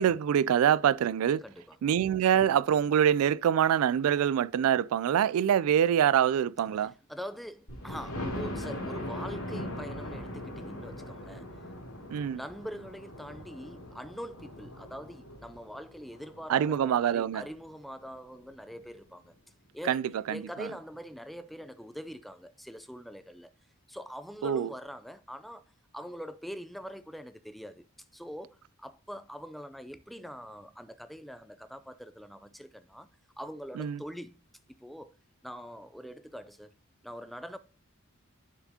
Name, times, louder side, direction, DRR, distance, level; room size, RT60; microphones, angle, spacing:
voice 1, 0.0-1.4 1.8-6.9 12.1-12.4 16.5-17.4 19.8-20.7 24.4-24.7 33.8-34.0, right 9 dB, 85° right, 0.3 m, -25 dB
voice 2, 1.4-1.8 7.1-11.6 12.3-19.3 19.7-20.0 20.3-23.5 23.9-25.6 25.9-27.8 28.1-33.1 33.4-34.4 34.7-35.2 35.4-36.7 37.0-37.6, equal, ahead, 0.3 m, -43 dB
Thunder, 7.7-17.4 18.0-18.1 18.5-18.6 18.8-18.9, left 1 dB, 85° left, 2.6 m, -40 dB
10.0 x 4.8 x 2.7 m
head